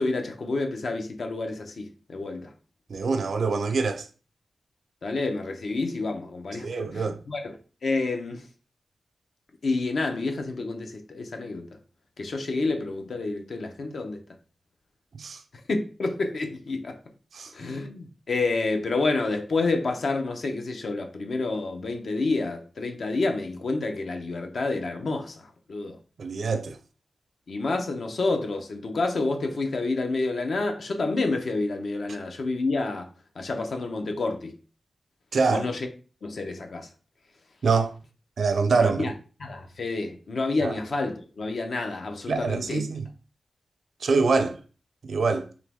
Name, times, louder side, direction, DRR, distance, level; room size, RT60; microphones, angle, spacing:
voice 1, 0.0-2.5 5.0-7.5 7.8-8.5 9.6-11.7 12.2-14.2 15.7-17.0 17.5-25.4 25.7-26.0 27.5-33.1 33.4-34.5 35.5-35.9 36.2-36.9 38.7-39.1 39.4-42.8, left 3 dB, 60° left, 0.6 m, -29 dB
voice 2, 2.9-4.1 6.6-7.2 15.2-15.4 17.3-17.7 26.2-26.8 35.3-35.6 37.6-37.9 38.4-39.1 40.6-40.7 42.3-43.1 44.0-44.6 45.0-45.5, right 4 dB, 65° right, 0.5 m, -25 dB
3.6 x 2.9 x 3.5 m
wide cardioid pair, 160°, 0 cm